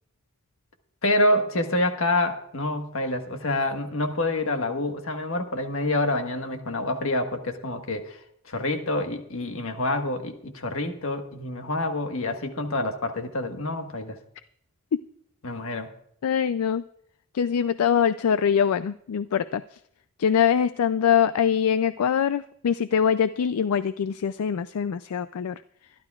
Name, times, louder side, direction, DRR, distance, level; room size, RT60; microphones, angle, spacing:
voice 1, 1.0-8.2 8.4-14.2 15.4-15.9, left 1 dB, 70° left, 6 dB, 1.4 m, -27 dB
voice 2, 16.2-16.8 17.3-19.6 20.2-25.6, left 8 dB, 90° left, 14 dB, 0.4 m, -23 dB
24.5 x 11.5 x 2.4 m, 0.70 s
head